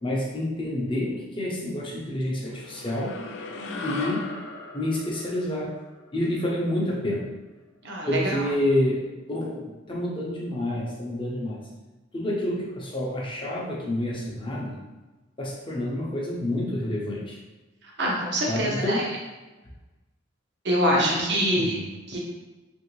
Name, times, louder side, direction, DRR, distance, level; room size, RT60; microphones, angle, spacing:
voice 1, 0.0-3.2 3.8-4.3 4.7-5.7 6.1-7.3 8.1-11.6 12.1-14.8 15.4-17.4 18.5-19.1 20.9-21.9, left 1 dB, 25° left, -4 dB, 0.6 m, -28 dB
sound 1, 2.5-7.1, left 3 dB, 60° left, 0.4 m, -39 dB
voice 2, 7.8-8.5 18.0-19.0 20.6-21.7 22.1-22.2, equal, 60° right, -2 dB, 0.8 m, -25 dB
3.0 x 2.6 x 3.0 m, 1.2 s
head